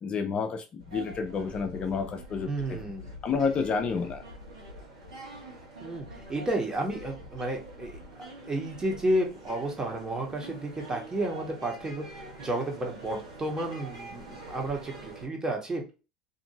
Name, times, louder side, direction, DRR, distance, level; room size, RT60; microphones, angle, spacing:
voice 1, 0.0-2.8 3.2-4.2, left 5 dB, 40° left, 6 dB, 0.4 m, -30 dB
sound 1, 0.8-15.3, right 1 dB, 85° right, 1.1 m, -45 dB
voice 2, 2.5-3.1 5.8-8.0 8.5-12.0 12.4-15.9, right 1 dB, 20° right, 1 dB, 1.2 m, -31 dB
2.7 x 2.6 x 2.7 m, 0.31 s
hypercardioid pair, 70°, 3 cm